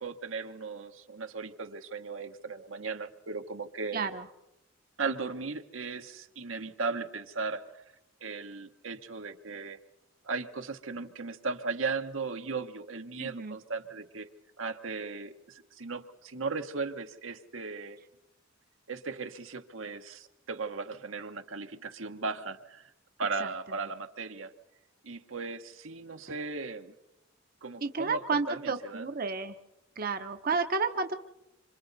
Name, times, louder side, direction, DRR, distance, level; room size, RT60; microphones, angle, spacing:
voice 1, 0.0-4.1 5.0-7.8 8.2-9.8 10.2-14.3 14.6-18.0 18.9-22.9 23.2-24.5 25.0-26.9 27.6-28.2 28.5-29.1, right 4 dB, 80° right, 7 dB, 1.2 m, -37 dB
voice 2, 3.9-4.3 13.2-13.6 23.4-23.5 27.8-29.6 30.0-31.1, right 4 dB, 45° right, 7 dB, 0.8 m, -31 dB
26.5 x 26.5 x 4.0 m, 0.88 s
head